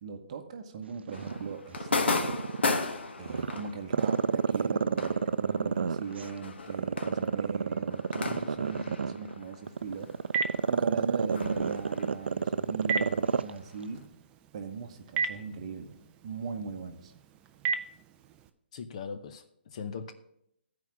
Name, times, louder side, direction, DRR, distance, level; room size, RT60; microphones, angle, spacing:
voice 1, 0.0-2.4 3.2-10.1 10.7-14.0 14.5-17.1, right 5 dB, 35° right, 1.0 m, -40 dB
sound 1, 1.1-10.1 10.3-13.9, left 3 dB, 85° left, 1.2 m, -36 dB
Growling, 1.1-2.8 3.3-6.3 6.7-13.5 13.8-13.9, right 5 dB, 90° right, 0.4 m, -29 dB
Telephone, 9.6-18.5, right 5 dB, 10° right, 0.3 m, -38 dB
voice 2, 18.7-20.1, left 6 dB, 35° left, 0.6 m, -40 dB
14.0 x 4.8 x 5.9 m
hypercardioid pair, 165°, 6 cm